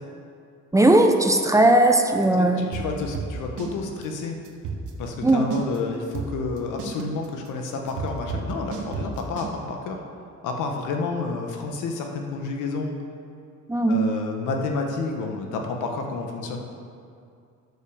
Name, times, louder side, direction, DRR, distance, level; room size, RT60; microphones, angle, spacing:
voice 1, 0.7-2.6 5.2-5.5 13.7-14.0, right 1 dB, 10° right, 5 dB, 0.8 m, -18 dB
voice 2, 2.4-4.4 5.0-10.0 10.4-12.9 13.9-16.6, left 3 dB, 90° left, 3 dB, 1.2 m, -30 dB
sound 1, 2.7-3.7 4.0-4.1 4.5-5.8 6.1-9.5, right 5 dB, 75° right, 1.4 m, -32 dB
8.2 x 6.9 x 6.9 m, 2.4 s
cardioid pair, 90°, 30 cm